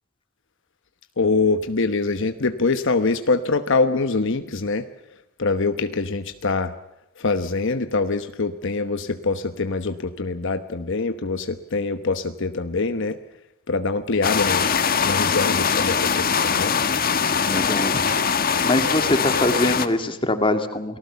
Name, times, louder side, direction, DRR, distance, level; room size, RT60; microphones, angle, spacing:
voice 1, 1.2-4.8 5.4-6.7 7.2-13.2 13.7-14.8 15.0-16.7, left 3 dB, 60° left, 9 dB, 1.1 m, -24 dB
sound 1, 14.2-19.9, left 6 dB, 45° left, 1.5 m, -22 dB
voice 2, 17.4-18.0 18.6-21.0, left 1 dB, 25° left, 7 dB, 2.3 m, -23 dB
29.0 x 19.0 x 7.0 m, 0.90 s
head